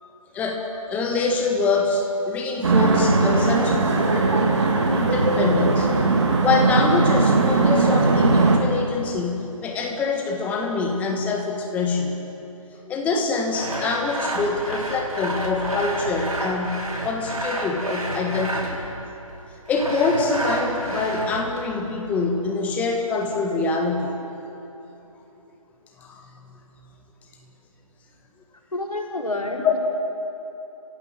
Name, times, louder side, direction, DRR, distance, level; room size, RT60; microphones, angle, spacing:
voice 1, 0.0-4.5 4.9-5.9 6.4-12.1 12.8-18.8 19.7-24.1 26.0-26.6 29.6-29.7, left 3 dB, 10° left, 2 dB, 1.6 m, -25 dB
sound 1, 2.6-8.6, right 3 dB, 50° right, 3.4 m, -19 dB
Sawing, 13.5-18.9 19.7-21.7, right 1 dB, 80° right, 6.0 m, -30 dB
voice 2, 28.7-29.8, left 2 dB, 85° left, 1 dB, 4.2 m, -28 dB
30.0 x 16.0 x 8.9 m, 3.0 s
figure-of-eight pair, 155°, 18 cm